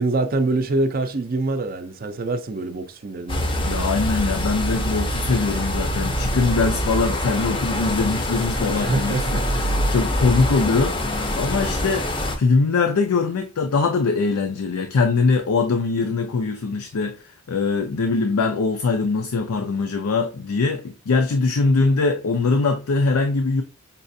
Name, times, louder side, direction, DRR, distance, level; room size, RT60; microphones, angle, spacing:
voice 1, 0.0-3.5 8.7-9.5, right 2 dB, 40° right, 0.4 m, -25 dB
sound 1, 3.3-12.4, equal, 25° left, 0.5 m, -24 dB
voice 2, 3.6-11.0 11.4-12.1 12.4-17.2 17.5-23.6, left 4 dB, 85° left, 0.5 m, -22 dB
5.3 x 2.4 x 2.6 m
head